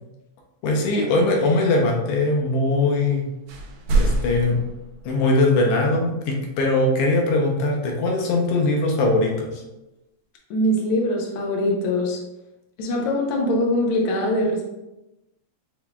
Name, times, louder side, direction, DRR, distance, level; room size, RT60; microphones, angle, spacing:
voice 1, 0.6-3.2 3.9-4.6 5.0-9.6, left 2 dB, 70° left, 0 dB, 1.6 m, -21 dB
sound 1, 3.0-3.2 3.5-5.5, right 2 dB, 80° right, 1.3 m, -25 dB
voice 2, 10.5-12.2 12.8-14.7, left 1 dB, 90° left, 0 dB, 1.1 m, -22 dB
5.9 x 3.4 x 2.2 m, 0.98 s
omnidirectional pair, 3.4 m